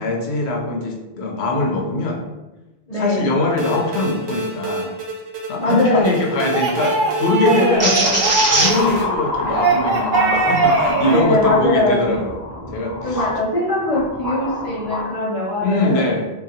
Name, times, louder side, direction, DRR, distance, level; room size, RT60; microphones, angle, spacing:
voice 1, 0.0-2.2 2.9-4.9 5.5-8.0 8.4-12.3 12.7-13.3 15.6-16.3, left 2 dB, 85° left, 2 dB, 0.9 m, -22 dB
voice 2, 2.9-3.2 5.6-6.1 7.4-8.3 11.1-12.2 13.0-16.1, left 1 dB, 40° left, -8 dB, 0.8 m, -21 dB
sound 1, 3.6-9.0, right 2 dB, 90° right, 0.9 m, -29 dB
sound 2, 6.0-8.9 9.4-11.2, right 4 dB, 60° right, 0.6 m, -21 dB
sound 3, 7.8-13.4 13.9-15.1, equal, 20° right, 0.6 m, -23 dB
3.7 x 2.3 x 2.8 m, 1.1 s
omnidirectional pair, 1.1 m